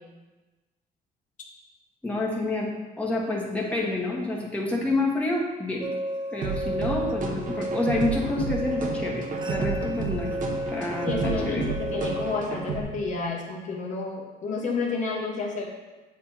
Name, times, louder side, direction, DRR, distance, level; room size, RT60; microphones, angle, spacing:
voice 1, 2.0-2.7 3.0-5.9 6.3-10.3 10.7-11.7, left 2 dB, 10° left, -4 dB, 1.3 m, -28 dB
sound 1, 5.8-12.4, equal, 25° right, 0.4 m, -33 dB
sound 2, 6.4-12.8, right 4 dB, 50° right, 0.9 m, -32 dB
voice 2, 11.0-15.7, left 3 dB, 45° left, -1 dB, 1.0 m, -30 dB
7.4 x 3.5 x 4.3 m, 1.2 s
cardioid pair, 110°, 17 cm